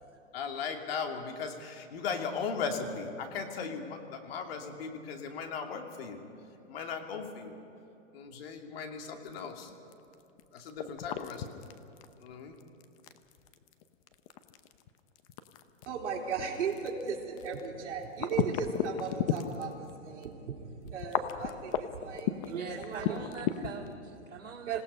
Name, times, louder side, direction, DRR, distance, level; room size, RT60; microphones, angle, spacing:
voice 1, 0.3-6.2 6.6-7.6 8.1-9.7 10.5-11.6 12.2-12.6 21.4-21.9, left 5 dB, 50° left, 3 dB, 2.7 m, -38 dB
sound 1, 9.3-19.9 20.2-20.3 20.8-23.9, left 11 dB, 30° left, 0.8 m, -34 dB
voice 2, 15.9-20.4 20.8-23.2 23.5-23.7 24.7-24.8, right 6 dB, 65° right, -1 dB, 3.7 m, -36 dB
voice 3, 22.5-24.8, right 6 dB, 85° right, -3 dB, 2.3 m, -42 dB
27.0 x 17.5 x 5.5 m, 2.9 s
hypercardioid pair, 145°, 38 cm